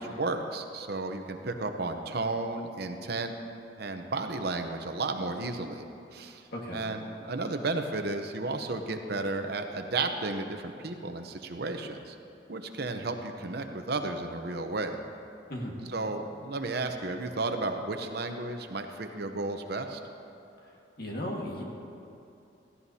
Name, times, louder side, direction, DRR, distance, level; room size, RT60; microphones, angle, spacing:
voice 1, 0.0-3.3 3.8-5.9 6.1-6.4 6.7-12.1 12.5-15.0 15.9-20.0, right 3 dB, 60° right, 6 dB, 0.8 m, -33 dB
voice 2, 6.5-6.8 15.5-15.7 20.6-21.6, equal, 55° left, -1 dB, 1.7 m, -36 dB
17.0 x 14.5 x 2.8 m, 2.7 s
head